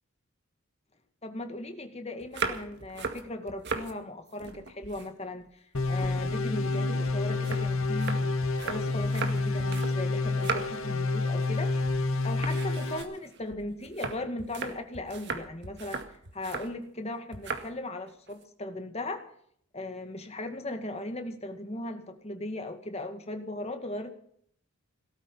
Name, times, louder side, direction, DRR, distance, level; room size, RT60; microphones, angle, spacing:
voice 1, 1.2-5.5 5.9-8.3 8.6-11.8 12.2-19.3 19.7-24.1, left 1 dB, 30° left, 6 dB, 2.0 m, -37 dB
sound 1, 2.2-3.9 4.3-5.5 5.8-10.0 10.2-10.9 11.3-11.6 11.8-12.0 12.4-16.7 17.3-17.7 18.1-18.4, right 4 dB, 55° right, 2.0 m, -37 dB
sound 2, 5.7-13.0, left 3 dB, 80° left, 1.6 m, -29 dB
17.5 x 13.5 x 5.6 m, 0.63 s
head